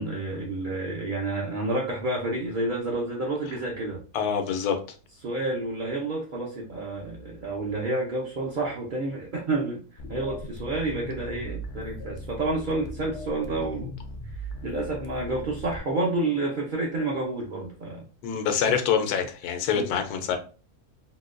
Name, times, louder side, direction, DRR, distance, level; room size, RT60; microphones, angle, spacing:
voice 1, 0.0-4.0 5.2-13.9 14.2-18.0 19.7-19.9, right 2 dB, 60° right, -2 dB, 0.5 m, -29 dB
voice 2, 4.1-4.8 18.2-20.4, left 7 dB, 85° left, 6 dB, 1.1 m, -25 dB
sound 1, 10.0-15.8, equal, 65° left, 0.7 m, -38 dB
3.9 x 2.1 x 2.4 m, 0.37 s
omnidirectional pair, 1.6 m